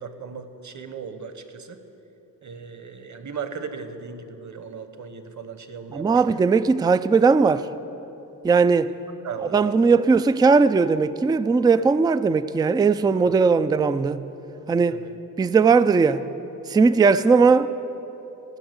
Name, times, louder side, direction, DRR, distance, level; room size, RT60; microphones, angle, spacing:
voice 1, 0.0-1.8 2.4-6.4 9.2-10.0 13.2-13.4 14.9-15.1, right 6 dB, 40° right, 1.2 m, -37 dB
voice 2, 5.9-7.7 8.4-8.9 9.5-14.2 14.7-15.0 15.4-16.2 16.7-17.7, right 4 dB, 10° right, 0.3 m, -18 dB
16.5 x 6.1 x 8.1 m
supercardioid pair, 50°, 44 cm